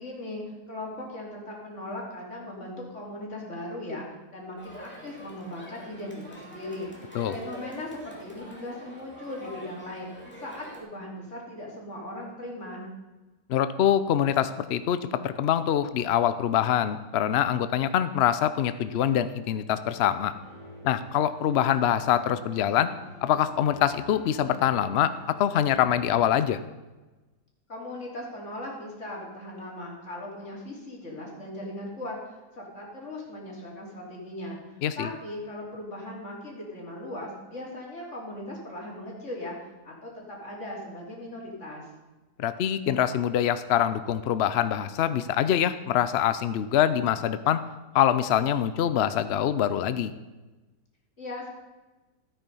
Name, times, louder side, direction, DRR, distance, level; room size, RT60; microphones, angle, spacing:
voice 1, 0.0-12.9 27.7-34.6 35.0-39.6 39.8-41.9 51.2-51.5, left 1 dB, 45° left, -2 dB, 3.3 m, -38 dB
Crowd, 4.6-10.8, right 1 dB, 5° left, 2.4 m, -45 dB
voice 2, 13.5-20.3 20.8-22.9 23.2-26.6 34.8-35.1 42.4-47.6 47.9-50.1, left 10 dB, 75° left, 12 dB, 0.5 m, -24 dB
sound 1, 19.7-26.4, equal, 30° right, 4.2 m, -47 dB
13.5 x 8.9 x 5.4 m, 1.1 s
omnidirectional pair, 1.8 m